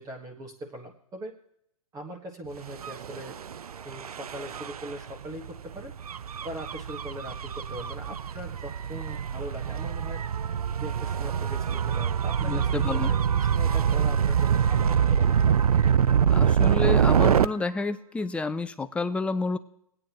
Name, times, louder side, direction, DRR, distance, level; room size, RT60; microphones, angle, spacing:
voice 1, 0.0-1.3 1.9-3.4 3.8-5.9 6.4-10.2 10.7-15.6, right 1 dB, 20° right, 1 dB, 1.5 m, -40 dB
Gull seagull / Waves surf / Siren, 2.7-17.5, right 8 dB, 90° right, 0.4 m, -25 dB
voice 2, 12.4-13.2 16.3-19.6, left 3 dB, 5° left, 10 dB, 0.5 m, -30 dB
20.5 x 9.1 x 3.0 m, 0.72 s
hypercardioid pair, 125°, 19 cm